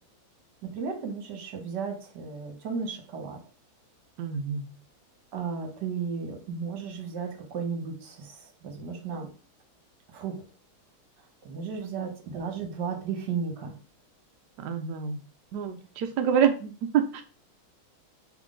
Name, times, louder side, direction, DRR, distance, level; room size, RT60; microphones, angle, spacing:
voice 1, 0.6-3.4 5.3-9.3 10.1-10.4 11.4-13.7, right 5 dB, 60° right, 4 dB, 1.4 m, -34 dB
voice 2, 4.2-4.6 14.6-15.2 15.5-17.2, right 7 dB, 80° right, 6 dB, 0.9 m, -27 dB
3.7 x 3.5 x 3.6 m, 0.36 s
omnidirectional pair, 2.3 m